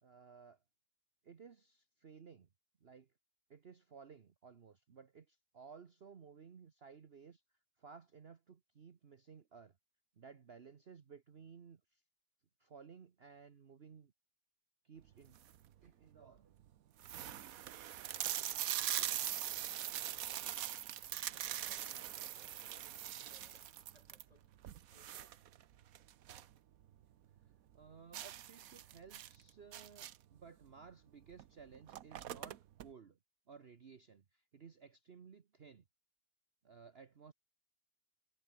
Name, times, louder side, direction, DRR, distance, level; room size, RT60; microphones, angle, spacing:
voice 1, 0.0-0.6 1.2-2.5 2.8-3.1 3.5-7.4 7.8-9.8 10.2-12.0 12.6-14.1 14.8-15.5 15.8-16.6 27.4-33.2 33.5-35.8 36.6-37.3, right 6 dB, 45° right, 1.2 m, -57 dB
sound 1, 15.2-15.7 16.3-16.4 16.6-16.7 17.0-26.6 26.9-27.0 27.4-27.5 28.1-30.4 31.3-31.4 31.7-32.9, right 11 dB, 70° right, 1.2 m, -42 dB
voice 2, 21.1-22.6 22.9-25.4, left 1 dB, 25° left, 5.9 m, -69 dB
omnidirectional pair, 1.6 m